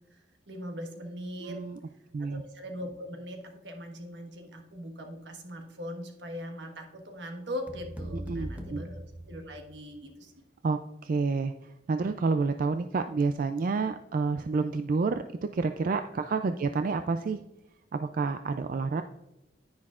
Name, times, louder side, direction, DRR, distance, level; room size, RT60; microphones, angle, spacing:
voice 1, 0.0-1.7 2.2-10.3 16.8-16.9, equal, 80° right, 4 dB, 1.4 m, -41 dB
voice 2, 1.4-1.8 2.1-2.4 8.1-8.8 10.6-17.4 17.9-19.0, right 4 dB, 50° right, 8 dB, 0.3 m, -29 dB
sound 1, 7.7-10.0, equal, 10° right, 0.9 m, -40 dB
10.0 x 9.7 x 2.4 m, 0.90 s
head